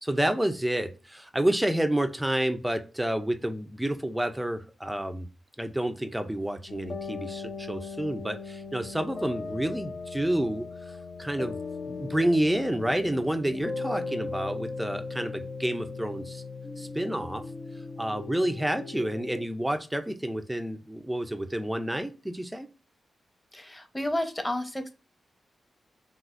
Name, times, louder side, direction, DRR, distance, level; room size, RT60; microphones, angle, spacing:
voice 1, 0.0-5.3 5.6-11.6 11.9-16.4 16.8-17.4 18.0-22.7, right 1 dB, 10° right, 8 dB, 0.4 m, -29 dB
sound 1, 6.7-19.4, left 4 dB, 60° left, 0.7 m, -38 dB
voice 2, 23.5-24.9, left 1 dB, 10° left, 6 dB, 0.8 m, -31 dB
6.0 x 2.4 x 2.5 m, 0.32 s
cardioid pair, 80°, 0 cm